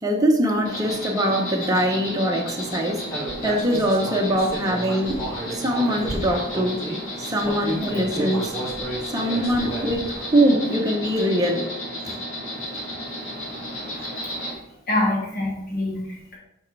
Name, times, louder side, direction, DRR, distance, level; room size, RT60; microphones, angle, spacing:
voice 1, 0.0-3.0 3.4-5.2 5.5-6.8 7.3-8.5 9.1-11.7 12.0-12.2, equal, 20° right, 0.7 m, -22 dB
Insect, 0.7-14.5, equal, 80° left, 2.1 m, -33 dB
Human voice, 3.1-7.0 7.4-10.1, right 1 dB, 15° left, 2.3 m, -32 dB
voice 2, 14.2-14.6 14.9-16.3, left 1 dB, 50° left, 2.1 m, -26 dB
6.3 x 5.2 x 3.3 m
head